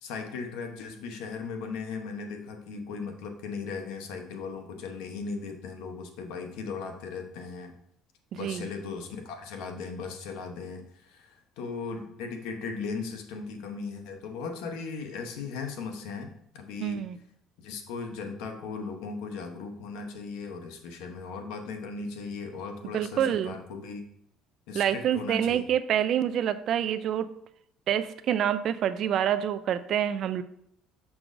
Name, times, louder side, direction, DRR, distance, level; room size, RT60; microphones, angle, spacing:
voice 1, 0.0-7.7 8.3-17.1 17.6-24.0 24.7-25.6, left 4 dB, 85° left, 5 dB, 0.9 m, -37 dB
voice 2, 8.3-8.7 16.8-17.2 22.9-23.6 24.7-27.3 27.9-30.4, right 10 dB, 45° right, 13 dB, 0.3 m, -27 dB
6.1 x 6.0 x 2.6 m, 0.72 s
cardioid pair, 150°, 0 cm